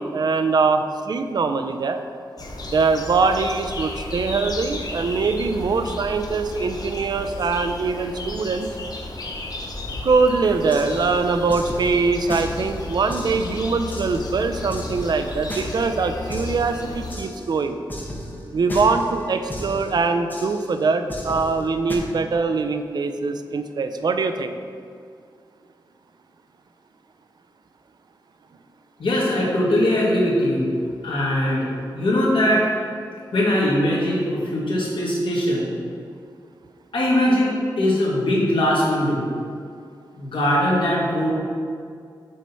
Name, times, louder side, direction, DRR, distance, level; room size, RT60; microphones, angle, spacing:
voice 1, 0.0-2.0 2.7-8.7 10.0-17.8 18.5-24.5, right 4 dB, 55° right, 8 dB, 0.4 m, -22 dB
sound 1, 2.4-17.2, left 2 dB, 50° left, 0.8 m, -34 dB
sound 2, 10.4-22.0, left 1 dB, 20° left, 1.0 m, -36 dB
voice 2, 29.0-30.7 31.0-31.7 31.9-32.7 33.3-35.7 36.9-39.2 40.1-41.3, left 1 dB, 85° left, -5 dB, 1.7 m, -21 dB
6.3 x 4.4 x 5.4 m, 2.3 s
wide cardioid pair, 160°, 8 cm